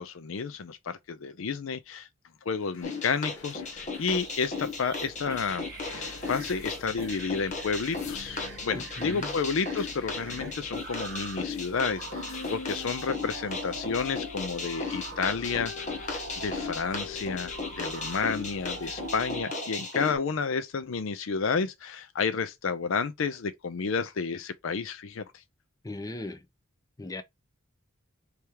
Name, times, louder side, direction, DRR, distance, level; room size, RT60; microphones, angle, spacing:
voice 1, 0.0-2.1 2.5-15.7 16.1-25.2, left 5 dB, 70° left, 0.5 m, -31 dB
sound 1, 2.5-19.4, left 2 dB, 85° left, 1.2 m, -45 dB
sound 2, 2.8-20.1, left 4 dB, 35° left, 1.1 m, -36 dB
sound 3, 4.0-14.2 14.6-17.1 17.5-20.0, right 6 dB, 50° right, 0.8 m, -46 dB
voice 2, 8.7-9.3 25.8-26.5 27.0-27.2, left 2 dB, 15° left, 0.5 m, -38 dB
3.4 x 3.3 x 4.5 m
head